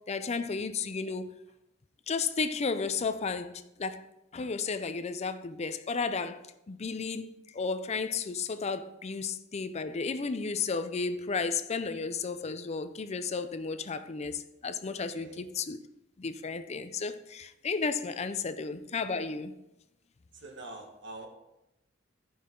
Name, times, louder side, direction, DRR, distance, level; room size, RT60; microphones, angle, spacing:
voice 1, 0.1-1.3 2.1-4.0 4.3-6.4 6.7-15.8 16.2-19.5, left 4 dB, 35° left, 0.5 m, -33 dB
voice 2, 15.1-15.4 20.3-21.3, right 2 dB, 65° right, 1.7 m, -45 dB
14.0 x 5.6 x 3.8 m
head